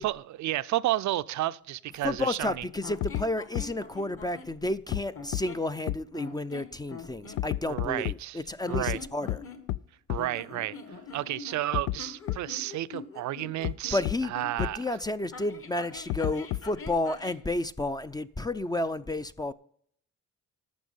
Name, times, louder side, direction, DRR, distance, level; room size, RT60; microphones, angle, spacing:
voice 1, 0.0-2.6 7.6-8.4 8.7-9.0 10.1-10.8 11.1-14.8, right 15 dB, 70° right, 0.5 m, -31 dB
voice 2, 2.0-9.4 13.9-14.3 14.6-19.5, left 2 dB, 15° left, 0.4 m, -31 dB
sound 1, 2.8-4.5 5.1-5.7 6.1-7.4 8.6-9.9 10.2-14.7 15.3-17.4, left 4 dB, 50° left, 1.7 m, -44 dB
sound 2, 3.0-3.2 3.5-3.6 4.9-5.0 5.3-5.4 5.9-6.0 7.4-8.1 8.7-9.0 9.3-9.4 9.7-9.8 10.1-10.2 11.7-12.0 12.3-12.4 13.6-13.7 14.0-14.1 14.6-14.7 16.1-16.8, left 15 dB, 80° left, 0.5 m, -29 dB
12.5 x 7.1 x 5.4 m
cardioid pair, 90°, 30 cm